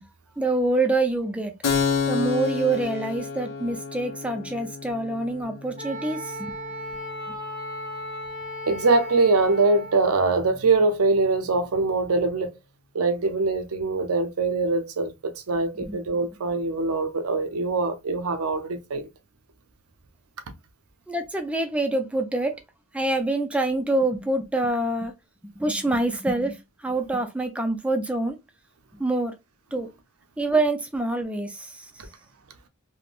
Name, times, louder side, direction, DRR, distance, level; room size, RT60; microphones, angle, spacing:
voice 1, 0.4-1.5 2.1-6.4 15.8-16.0 21.1-22.6 22.9-25.1 25.6-28.4 29.0-29.3 29.7-29.9 30.4-31.9, right 2 dB, 5° right, 0.4 m, -26 dB
Keyboard (musical), 1.6-8.9, left 6 dB, 80° left, 0.8 m, -31 dB
Wind instrument woodwind instrument, 5.8-10.0, equal, 25° right, 0.7 m, -36 dB
voice 2, 8.7-12.6 12.9-19.1, right 3 dB, 90° right, 0.6 m, -23 dB
3.4 x 2.1 x 2.4 m
head